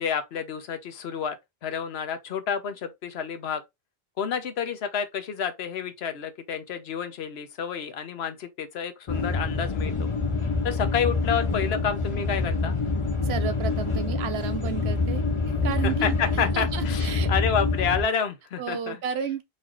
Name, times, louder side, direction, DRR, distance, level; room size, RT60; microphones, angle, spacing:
voice 1, 0.0-1.4 1.6-3.6 4.2-10.1 10.6-12.7 15.8-19.0, left 7 dB, 80° left, 1.0 m, -29 dB
sound 1, 9.1-18.0, left 3 dB, 35° left, 0.7 m, -26 dB
voice 2, 13.2-17.3 18.6-19.4, right 7 dB, 90° right, 1.0 m, -32 dB
4.1 x 2.7 x 3.1 m
omnidirectional pair, 1.0 m